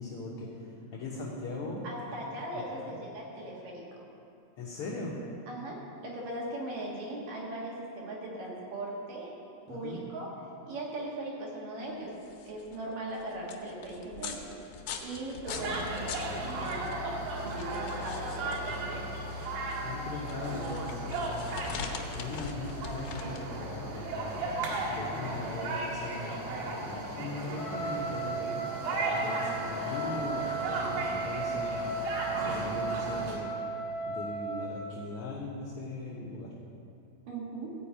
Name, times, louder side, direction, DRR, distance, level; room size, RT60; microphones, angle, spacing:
voice 1, 0.0-1.8 2.5-3.0 4.6-5.2 9.7-10.0 19.8-21.4 22.1-28.6 29.0-33.5 34.1-36.5, left 2 dB, 70° left, -5 dB, 1.4 m, -40 dB
voice 2, 1.8-4.0 5.5-9.3 9.7-10.3 10.7-12.1 12.4-14.6 15.0-18.7 29.1-29.5 29.8-30.0 30.3-31.0 37.3-37.7, right 1 dB, 70° right, -3 dB, 3.2 m, -39 dB
sound 1, 12.0-26.6, left 6 dB, 85° left, 2.7 m, -44 dB
sound 2, 15.5-33.4, right 2 dB, 90° right, 3.5 m, -36 dB
Trumpet, 27.5-34.8, right 3 dB, 25° left, 1.1 m, -35 dB
14.5 x 5.2 x 8.6 m, 2.6 s
omnidirectional pair, 4.1 m